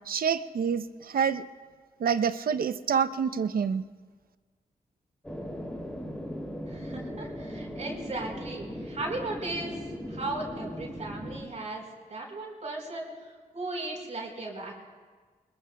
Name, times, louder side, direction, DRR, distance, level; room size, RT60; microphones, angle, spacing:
voice 1, 0.1-1.4 2.0-3.8, right 7 dB, 65° right, 11 dB, 0.6 m, -27 dB
sound 1, 5.2-11.4, equal, 5° left, 2.7 m, -38 dB
voice 2, 6.7-9.8 10.1-13.1 13.5-14.7, right 2 dB, 45° right, -1 dB, 4.5 m, -36 dB
26.0 x 21.0 x 2.3 m, 1.5 s
wide cardioid pair, 105°, 16 cm